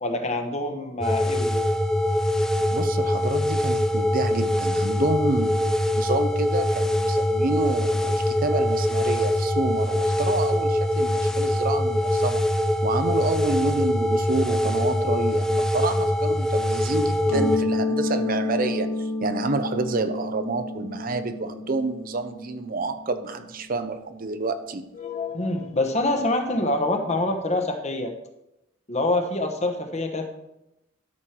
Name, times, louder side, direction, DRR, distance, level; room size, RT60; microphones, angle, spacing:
voice 1, 0.0-1.6 8.5-8.6 25.0-28.1 28.9-30.3, left 2 dB, 35° left, 5 dB, 1.2 m, -26 dB
sound 1, 1.0-17.6, left 1 dB, 5° left, 0.4 m, -23 dB
voice 2, 2.7-12.5 12.8-24.8, right 3 dB, 45° right, 9 dB, 0.6 m, -28 dB
Mallet percussion, 17.3-22.8, left 2 dB, 80° left, 1.5 m, -29 dB
12.5 x 6.4 x 4.5 m, 0.87 s
head